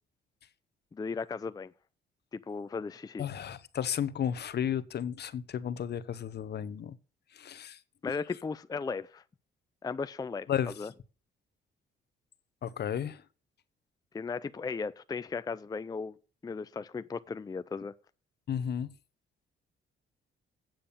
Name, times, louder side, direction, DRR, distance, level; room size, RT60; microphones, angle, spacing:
voice 1, 0.9-1.7 2.3-3.2 8.0-9.2 9.8-10.9 14.1-16.2 16.4-17.9, left 4 dB, 20° left, 0.4 m, -36 dB
voice 2, 3.2-7.0 7.3-7.8 10.5-10.7 12.6-13.2 18.5-18.9, left 9 dB, 55° left, 1.0 m, -33 dB
8.7 x 7.6 x 6.9 m
cardioid pair, 90°, 20 cm